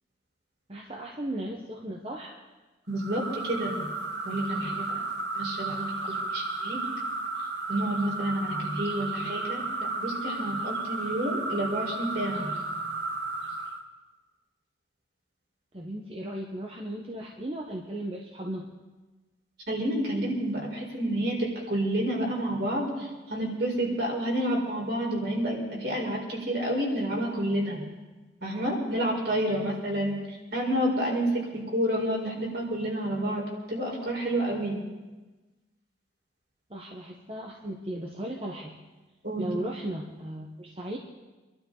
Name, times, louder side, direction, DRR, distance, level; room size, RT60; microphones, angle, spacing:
voice 1, 0.7-2.3 15.7-18.7 36.7-38.8 39.4-41.0, right 1 dB, 30° right, 0 dB, 1.2 m, -36 dB
voice 2, 2.9-3.9 4.2-4.9 5.3-6.8 7.7-12.5 19.7-27.8 28.4-33.4 33.7-34.8 39.2-39.5, right 1 dB, 60° right, -2 dB, 4.7 m, -29 dB
sound 1, 3.0-13.8, right 3 dB, 75° right, 1.6 m, -33 dB
26.0 x 12.0 x 4.0 m, 1.2 s
head